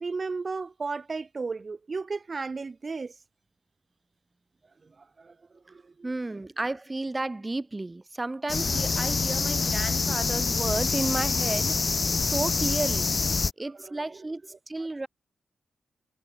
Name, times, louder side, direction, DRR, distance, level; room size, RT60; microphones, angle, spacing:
voice 1, 0.0-3.1 5.2-5.3 5.7-6.4 13.8-14.2, right 4 dB, 35° right, 1.1 m, -34 dB
voice 2, 6.0-11.8 12.2-13.1 13.6-14.4 14.7-15.1, right 2 dB, 20° right, 1.5 m, -32 dB
sound 1, 8.5-13.5, left 4 dB, 40° left, 1.5 m, -26 dB
wide cardioid pair, 115°, 0 cm